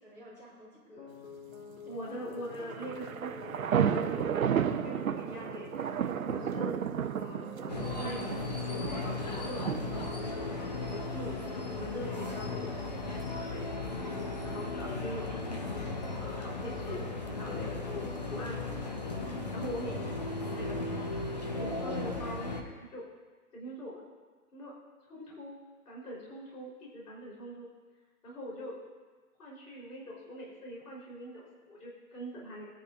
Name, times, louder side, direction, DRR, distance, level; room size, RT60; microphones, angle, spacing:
voice 1, 0.0-1.1 15.1-15.5 20.0-20.7, equal, 5° left, -10 dB, 3.2 m, -53 dB
sound 1, 1.0-18.1, left 5 dB, 60° left, 1.9 m, -49 dB
voice 2, 1.8-6.8 7.1-8.5 8.7-13.8 14.4-15.2 15.5-17.0 17.4-19.2 19.5-20.2 20.4-21.1 21.5-23.1 23.5-24.0 24.5-24.7 25.1-25.6 25.9-27.7 28.2-28.8 29.4-32.7, equal, 75° left, -5 dB, 4.0 m, -43 dB
sound 2, 2.5-10.1, right 8 dB, 60° right, 0.8 m, -33 dB
sound 3, 7.7-22.6, left 3 dB, 30° left, 0.7 m, -36 dB
21.5 x 9.8 x 2.6 m, 1.4 s
hypercardioid pair, 170°, 46 cm